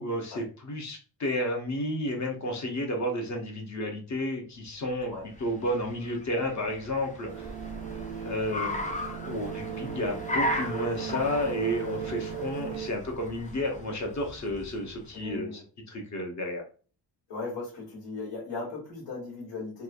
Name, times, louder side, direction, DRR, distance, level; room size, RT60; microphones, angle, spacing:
voice 1, 0.0-5.1 5.4-7.5 8.2-8.8 9.2-15.5 15.9-16.6, left 1 dB, 40° left, 2 dB, 0.7 m, -31 dB
Car, 5.0-15.2, left 1 dB, 20° left, 0.4 m, -37 dB
sound 1, 7.3-12.9, right 11 dB, 85° right, 0.6 m, -37 dB
voice 2, 15.1-15.6 17.3-19.8, left 3 dB, 90° left, -7 dB, 1.5 m, -38 dB
3.0 x 2.2 x 2.4 m, 0.37 s
wide cardioid pair, 155°, 44 cm